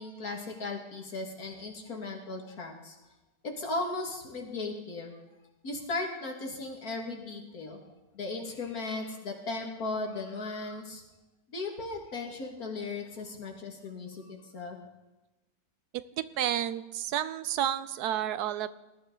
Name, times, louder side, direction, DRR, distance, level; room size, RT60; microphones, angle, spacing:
voice 1, 0.0-3.0 3.4-5.2 5.6-11.0 11.5-14.8, left 3 dB, 70° left, 1 dB, 2.6 m, -37 dB
voice 2, 15.9-18.7, right 11 dB, 85° right, 14 dB, 1.2 m, -31 dB
19.5 x 13.0 x 3.9 m, 1.1 s
omnidirectional pair, 1.6 m